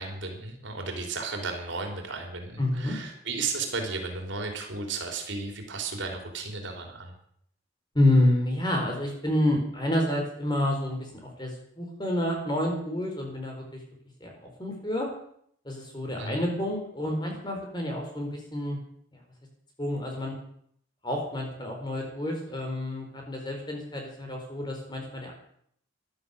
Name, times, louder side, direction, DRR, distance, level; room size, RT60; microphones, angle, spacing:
voice 1, 0.0-7.1 16.2-16.5, right 4 dB, 75° right, 3 dB, 3.6 m, -34 dB
voice 2, 2.6-3.0 7.9-11.1 11.4-13.8 14.2-15.1 15.6-18.8 19.8-20.3 21.0-25.3, left 1 dB, 20° left, 1 dB, 4.3 m, -28 dB
14.5 x 11.5 x 6.9 m, 0.67 s
head